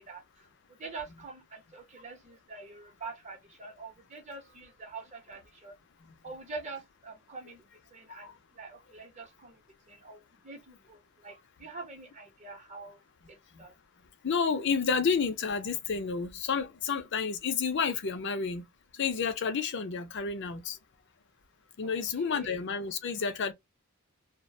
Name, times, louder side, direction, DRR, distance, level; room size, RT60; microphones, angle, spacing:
voice 1, 0.0-5.7 6.2-9.6 9.9-13.0 13.3-13.7 21.8-22.5, right 3 dB, 30° right, 0.8 m, -45 dB
voice 2, 14.2-18.6 18.9-20.8 21.8-23.5, left 5 dB, 55° left, 0.5 m, -30 dB
2.3 x 2.1 x 2.6 m
head